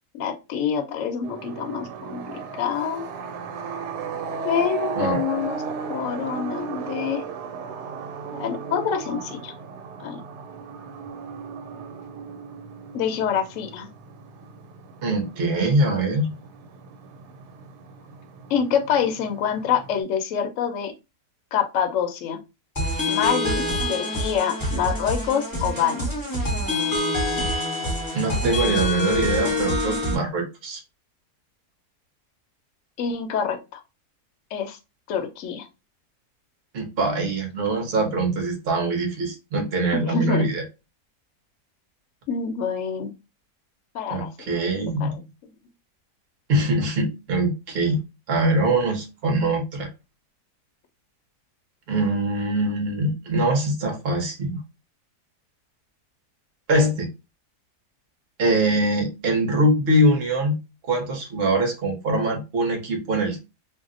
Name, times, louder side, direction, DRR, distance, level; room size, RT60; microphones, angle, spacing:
voice 1, 0.1-3.0 4.4-5.6 5.9-7.2 8.4-9.5 10.0-10.2 12.9-13.9 18.5-20.9 21.5-22.4 23.1-26.1 33.0-33.8 34.5-34.8 35.1-35.7 39.9-40.5 42.3-43.1 43.9-44.5 45.0-45.1, left 7 dB, 70° left, 0.8 m, -26 dB
sound 1, 1.2-20.0, right 6 dB, 85° right, 1.2 m, -36 dB
voice 2, 15.0-16.3 28.1-30.8 36.7-40.6 44.1-45.2 46.5-49.9 51.9-54.6 56.7-57.1 58.4-63.4, right 1 dB, 50° right, 0.8 m, -23 dB
sound 2, 22.8-30.1, left 1 dB, 20° left, 0.6 m, -25 dB
2.7 x 2.0 x 3.6 m
omnidirectional pair, 1.7 m